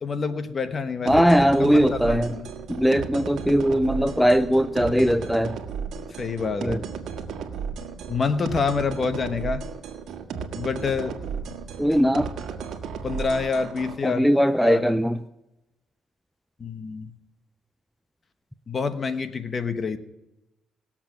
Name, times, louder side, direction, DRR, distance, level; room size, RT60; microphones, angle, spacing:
voice 1, 0.0-1.2 1.6-2.5 6.2-6.8 8.1-9.6 10.5-11.2 13.0-14.2 14.6-14.9 16.6-17.1 18.7-20.0, left 5 dB, 40° left, 1.2 m, -27 dB
voice 2, 1.1-2.3 2.7-5.6 6.6-6.8 11.8-12.3 14.0-15.2, equal, ahead, 0.4 m, -20 dB
sound 1, 1.1-13.9, right 6 dB, 75° right, 1.5 m, -34 dB
19.5 x 7.4 x 6.0 m
cardioid pair, 90°, 0 cm